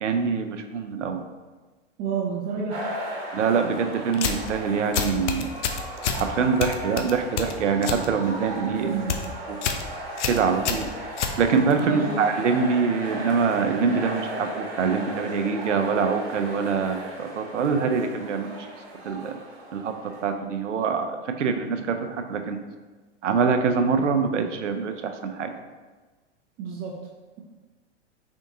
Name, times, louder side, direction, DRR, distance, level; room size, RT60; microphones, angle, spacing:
voice 1, 0.0-1.2 3.3-5.5 6.1-8.9 9.5-9.6 10.3-10.9 11.4-18.6 19.0-19.4 19.7-19.9 20.2-22.6 23.2-25.5, right 5 dB, 90° right, 6 dB, 0.5 m, -24 dB
voice 2, 2.0-2.8 8.8-9.1 11.8-12.2 26.6-27.0, right 6 dB, 25° right, -2 dB, 0.4 m, -29 dB
sound 1, 2.7-20.3, right 1 dB, 45° right, 1.1 m, -36 dB
sound 2, 4.1-4.5 4.9-6.2 6.6-8.1 8.4-8.7 9.0-9.3 9.6-9.9 10.2-11.8, left 7 dB, 75° left, 0.6 m, -28 dB
3.6 x 3.5 x 2.7 m, 1.3 s
hypercardioid pair, 105°, 35 cm